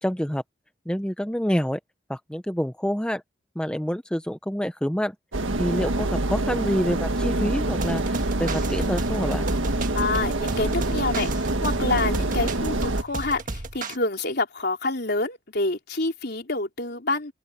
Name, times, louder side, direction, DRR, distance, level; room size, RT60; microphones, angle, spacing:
voice 1, 0.0-0.4 0.9-1.8 2.1-3.2 3.6-5.1 5.6-9.5, equal, 5° left, 0.8 m, -27 dB
sound 1, 5.3-13.0, right 2 dB, 90° right, 1.6 m, -26 dB
sound 2, 7.7-14.0, right 2 dB, 45° right, 1.6 m, -34 dB
voice 2, 9.9-11.3 11.6-17.3, left 2 dB, 55° left, 4.0 m, -27 dB
open air
head